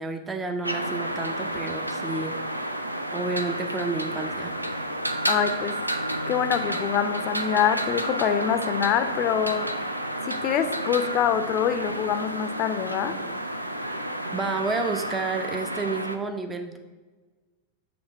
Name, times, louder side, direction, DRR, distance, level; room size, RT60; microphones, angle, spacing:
voice 1, 0.0-2.4 3.1-4.6 14.3-16.8, right 3 dB, 15° right, 6 dB, 0.5 m, -30 dB
sound 1, 0.6-16.2, right 1 dB, 85° right, 0.4 m, -30 dB
voice 2, 5.3-5.8 6.3-9.7 10.2-13.2, left 9 dB, 35° left, 10 dB, 0.5 m, -25 dB
7.0 x 3.3 x 5.4 m, 1.3 s
figure-of-eight pair, 90°, 0 cm